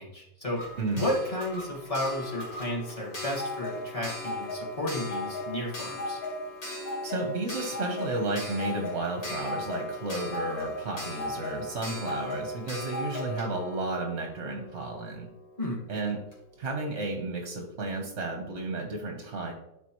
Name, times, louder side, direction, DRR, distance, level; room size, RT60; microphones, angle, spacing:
voice 1, 0.0-0.6 0.9-6.2 15.6-15.8, left 1 dB, 20° left, -4 dB, 1.7 m, -32 dB
Clock, 0.6-15.2 16.3-16.4 16.6-16.7, left 1 dB, 90° left, 3.1 m, -37 dB
voice 2, 7.0-15.3 15.9-16.2 16.6-19.5, right 2 dB, 45° right, 3 dB, 1.0 m, -32 dB
12.0 x 4.4 x 3.0 m, 0.87 s
omnidirectional pair, 2.1 m